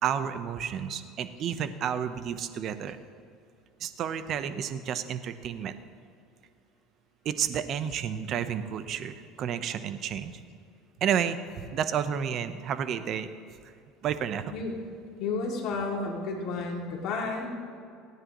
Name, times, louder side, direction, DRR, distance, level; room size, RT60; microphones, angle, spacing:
voice 1, 0.0-3.0 3.8-5.8 7.2-10.3 11.0-13.3 14.0-14.4, right 8 dB, 50° right, 11 dB, 0.9 m, -31 dB
voice 2, 15.2-17.5, left 3 dB, 65° left, -1 dB, 2.6 m, -31 dB
28.0 x 9.7 x 3.1 m, 2.5 s
supercardioid pair, 115°, 0 cm